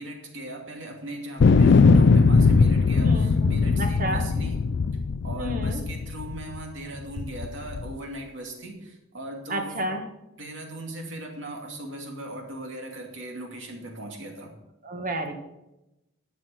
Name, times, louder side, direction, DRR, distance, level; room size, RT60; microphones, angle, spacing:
voice 1, 0.0-4.6 5.2-9.8 10.4-14.5 15.2-15.3, right 1 dB, 65° right, 1 dB, 2.6 m, -38 dB
sound 1, 1.4-6.6 7.2-7.9, left 4 dB, 60° left, 0.4 m, -20 dB
voice 2, 3.0-4.2 5.4-5.8 9.5-10.0 14.8-15.3, right 1 dB, 40° right, 5 dB, 1.6 m, -31 dB
11.5 x 7.7 x 5.8 m, 0.93 s
head